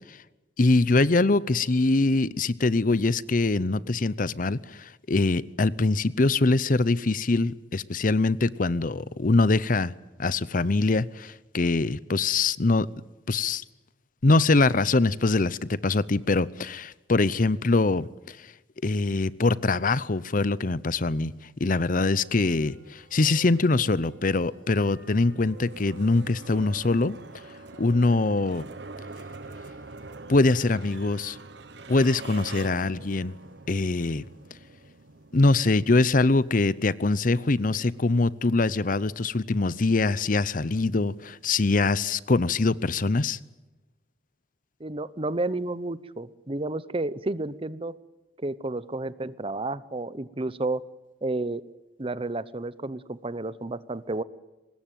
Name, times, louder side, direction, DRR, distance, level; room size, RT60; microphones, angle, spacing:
voice 1, 0.6-9.9 10.2-12.9 13.3-13.6 14.2-18.5 18.8-21.3 21.6-27.2 27.8-28.6 30.3-31.4 31.9-33.3 33.7-34.2 35.3-43.4, left 3 dB, 50° left, 0.8 m, -23 dB
sound 1, 21.9-32.0, right 5 dB, 60° right, 6.4 m, -51 dB
sound 2, 22.2-41.5, right 3 dB, 80° right, 1.2 m, -47 dB
voice 2, 44.8-47.9 48.4-50.8 51.2-51.6 52.0-54.2, right 2 dB, 30° right, 0.9 m, -31 dB
24.5 x 20.5 x 9.1 m
head